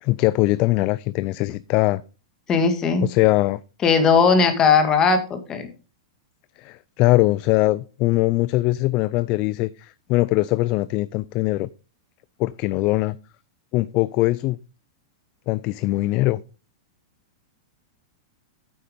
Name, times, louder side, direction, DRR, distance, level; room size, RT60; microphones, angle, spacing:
voice 1, 0.0-2.0 3.0-3.6 6.6-11.7 12.4-13.2 13.7-14.6 15.5-16.4, left 19 dB, 35° left, 0.4 m, -21 dB
voice 2, 2.5-3.1 3.8-5.7, left 5 dB, 20° left, 1.8 m, -18 dB
9.4 x 6.8 x 5.1 m
supercardioid pair, 150°, 3 cm